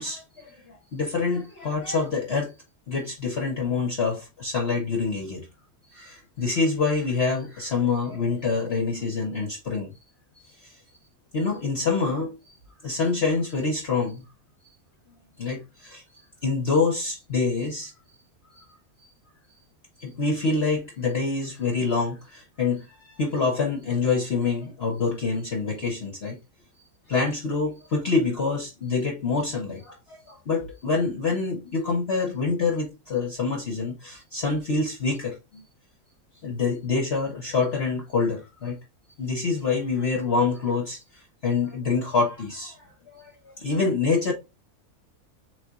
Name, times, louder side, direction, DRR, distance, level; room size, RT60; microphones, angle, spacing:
voice 1, 0.0-2.5 2.9-5.5 5.9-9.9 10.6-10.7 11.3-12.4 12.8-14.2 15.4-16.0 16.4-17.9 18.6-18.7 20.0-26.4 27.1-35.6 36.4-38.8 39.2-42.9 43.1-44.3, left 4 dB, 45° left, 1.3 m, -26 dB
7.6 x 2.9 x 2.4 m
omnidirectional pair, 1.5 m